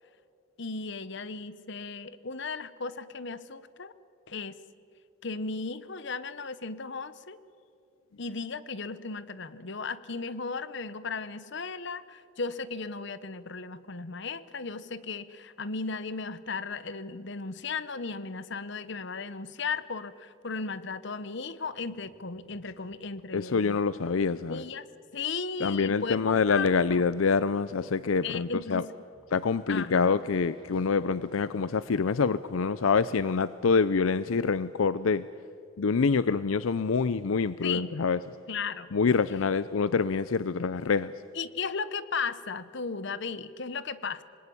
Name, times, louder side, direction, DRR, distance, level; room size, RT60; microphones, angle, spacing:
voice 1, 0.6-3.9 4.3-4.6 5.2-7.4 8.2-23.8 24.5-24.9 25.1-27.0 28.2-28.9 29.7-30.2 37.6-37.9 38.5-38.9 41.3-44.2, left 4 dB, 60° left, 15 dB, 1.0 m, -36 dB
sound 1, 21.7-23.6 23.9-24.2 24.6-28.2 29.1-32.2, left 1 dB, 25° left, 7.0 m, -58 dB
voice 2, 23.3-24.6 25.6-28.9 29.3-35.3 35.8-38.2 38.9-41.1, left 5 dB, 85° left, 16 dB, 0.5 m, -26 dB
26.5 x 20.5 x 9.9 m, 2.5 s
head